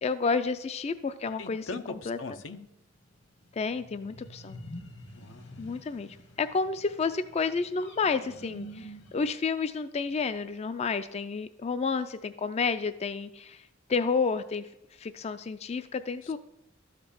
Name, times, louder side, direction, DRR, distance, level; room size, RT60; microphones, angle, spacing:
voice 1, 0.0-2.2 3.5-4.6 5.6-16.4, left 4 dB, 35° left, 12 dB, 0.4 m, -31 dB
voice 2, 1.4-2.6 5.1-5.5 16.2-16.4, left 3 dB, 85° left, 9 dB, 0.8 m, -40 dB
sound 1, 3.4-9.3, equal, 65° left, 1.5 m, -47 dB
12.5 x 5.1 x 7.1 m, 0.85 s
head